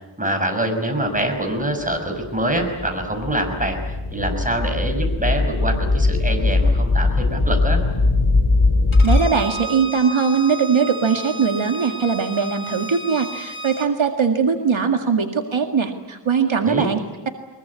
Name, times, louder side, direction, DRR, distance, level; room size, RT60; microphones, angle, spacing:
voice 1, 0.2-3.8 4.1-7.8 16.6-16.9, right 1 dB, 15° right, 4 dB, 5.8 m, -24 dB
sound 1, 2.2-9.2, left 3 dB, 70° left, 4.3 m, -20 dB
Bowed string instrument, 8.9-13.9, right 3 dB, 85° left, 2.3 m, -33 dB
voice 2, 9.0-17.3, right 5 dB, 75° right, 4 dB, 2.0 m, -20 dB
23.0 x 22.0 x 9.7 m, 1.1 s
wide cardioid pair, 75°, 47 cm